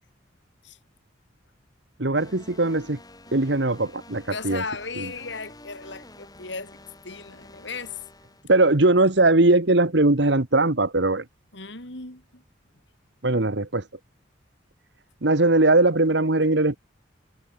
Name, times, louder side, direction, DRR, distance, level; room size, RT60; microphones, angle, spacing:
voice 1, 2.0-3.0 3.3-4.6 5.0-5.1 8.5-11.2 13.2-13.8 15.2-16.8, right 2 dB, 65° right, 1.5 m, -20 dB
sound 1, 2.2-8.4, left 2 dB, 20° left, 3.1 m, -48 dB
voice 2, 4.3-8.0 11.5-12.4, left 4 dB, 70° left, 5.6 m, -36 dB
head